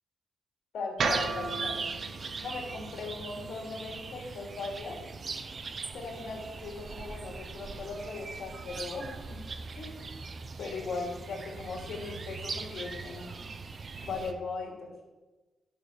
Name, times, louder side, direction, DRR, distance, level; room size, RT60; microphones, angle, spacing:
voice 1, 0.7-1.8 2.4-5.0 5.9-9.4 9.7-10.0 10.6-13.3 14.0-14.9, left 3 dB, 80° left, 1 dB, 2.8 m, -38 dB
sound 1, 1.0-14.3, right 4 dB, 45° right, 0.8 m, -40 dB
sound 2, 1.0-5.2, right 4 dB, 65° right, 1.2 m, -36 dB
11.5 x 5.8 x 7.1 m, 1.2 s
cardioid pair, 95°, 0 cm